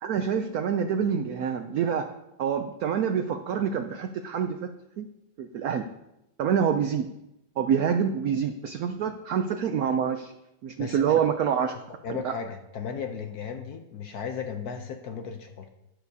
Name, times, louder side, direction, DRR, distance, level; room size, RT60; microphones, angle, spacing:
voice 1, 0.0-4.7 5.0-5.1 5.4-5.8 6.4-7.1 7.6-10.3 10.6-11.8 12.2-12.3, right 7 dB, 85° right, 8 dB, 0.8 m, -26 dB
voice 2, 12.0-15.7, left 6 dB, 65° left, 6 dB, 1.0 m, -35 dB
11.5 x 10.5 x 2.7 m, 0.89 s
omnidirectional pair, 2.2 m